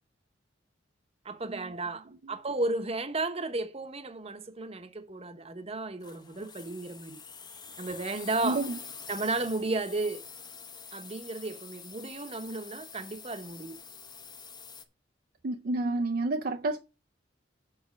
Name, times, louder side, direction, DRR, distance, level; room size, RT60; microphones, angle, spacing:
voice 1, 1.2-7.2 7.8-8.7 9.1-10.2 10.9-13.8, right 2 dB, 35° right, 0.9 m, -34 dB
sound 1, 6.0-14.8, left 6 dB, 25° left, 0.8 m, -46 dB
voice 2, 8.4-8.8 15.4-16.8, right 2 dB, 55° right, 0.5 m, -29 dB
7.3 x 4.9 x 6.3 m
head